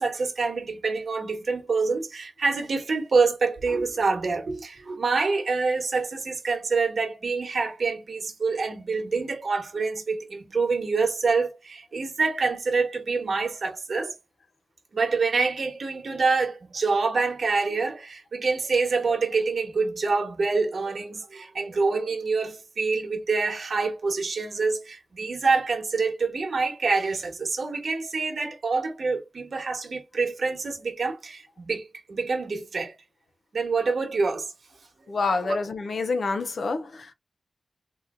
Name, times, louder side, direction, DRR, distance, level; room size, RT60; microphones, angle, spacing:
voice 1, 0.0-14.1 14.9-32.9 33.5-34.5 35.5-35.6, right 4 dB, 60° right, 1.2 m, -26 dB
voice 2, 35.1-37.1, left 3 dB, 65° left, 0.6 m, -27 dB
3.9 x 2.8 x 2.5 m
wide cardioid pair, 125°, 0 cm